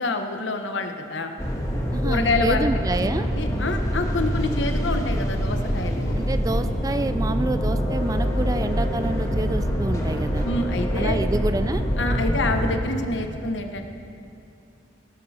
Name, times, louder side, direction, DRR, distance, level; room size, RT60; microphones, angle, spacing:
voice 1, 0.0-1.3 2.0-2.7 3.0-6.2 10.5-11.2 12.0-13.8, left 2 dB, 80° left, 6 dB, 1.0 m, -27 dB
sound 1, 1.4-12.8, equal, 20° left, 1.4 m, -25 dB
voice 2, 1.9-3.3 6.2-10.5 11.0-11.8, right 2 dB, 20° right, 10 dB, 0.3 m, -28 dB
17.5 x 11.5 x 4.3 m, 2.6 s
head